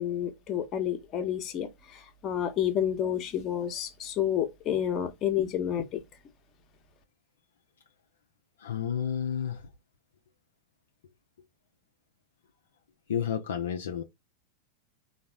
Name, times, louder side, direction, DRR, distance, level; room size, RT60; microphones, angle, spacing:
voice 1, 0.0-6.0, left 10 dB, 30° left, 0.9 m, -30 dB
voice 2, 8.6-9.7 13.1-14.0, left 8 dB, 65° left, 0.5 m, -31 dB
3.9 x 2.4 x 3.4 m
figure-of-eight pair, 90°, 0 cm